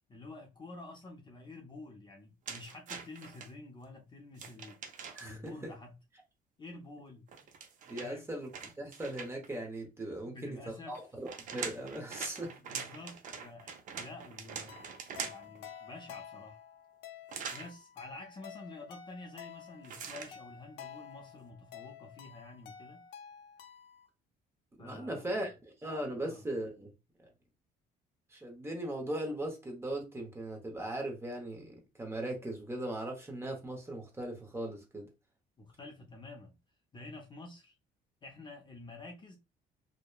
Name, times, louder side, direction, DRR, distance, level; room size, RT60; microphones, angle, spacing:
voice 1, 0.1-4.8 5.2-6.0 6.6-7.3 8.0-8.3 10.2-11.0 12.6-16.6 17.5-23.0 24.8-25.5 26.1-26.4 35.6-36.6 36.9-37.8 38.2-39.4, left 2 dB, 25° left, 0.6 m, -49 dB
sound 1, 2.4-3.5 4.3-5.5 7.3-9.6 10.9-15.6 17.3-17.7 19.8-20.3, right 6 dB, 50° right, 0.5 m, -43 dB
voice 2, 5.1-5.7 7.9-12.5 24.8-25.5 25.8-26.9 27.2-27.3 28.3-35.1, right 1 dB, 15° right, 0.8 m, -39 dB
sound 2, 14.7-24.1, left 9 dB, 75° left, 0.5 m, -51 dB
2.8 x 2.1 x 2.2 m
cardioid pair, 110°, 17 cm